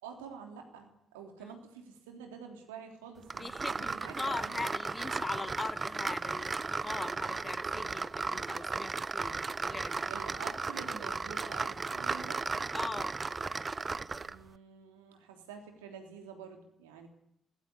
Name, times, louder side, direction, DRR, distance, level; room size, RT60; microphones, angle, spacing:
voice 1, 0.0-4.7 10.1-12.4 14.2-17.1, right 6 dB, 80° right, 3 dB, 3.4 m, -48 dB
sound 1, 3.3-14.4, right 4 dB, 35° right, 1.0 m, -35 dB
voice 2, 3.4-10.1 12.7-13.2, left 3 dB, 30° left, 13 dB, 1.8 m, -41 dB
26.5 x 19.0 x 8.5 m, 0.79 s
figure-of-eight pair, 40°, 0 cm